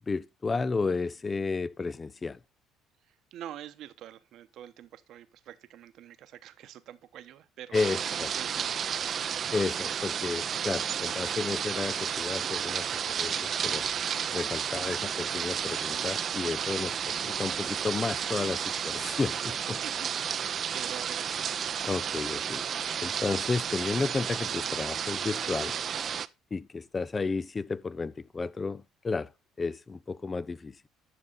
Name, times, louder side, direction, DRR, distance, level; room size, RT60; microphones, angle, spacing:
voice 1, 0.0-2.4 7.7-8.3 9.5-13.8 14.3-19.8 21.8-22.6 23.0-25.7 26.5-29.3 29.6-30.7, left 4 dB, 25° left, 0.5 m, -32 dB
voice 2, 3.3-7.8 8.1-8.7 19.8-21.5, right 11 dB, 65° right, 1.0 m, -46 dB
sound 1, 7.7-26.3, right 8 dB, 50° right, 0.6 m, -32 dB
11.0 x 6.6 x 4.0 m
supercardioid pair, 85°, 0 cm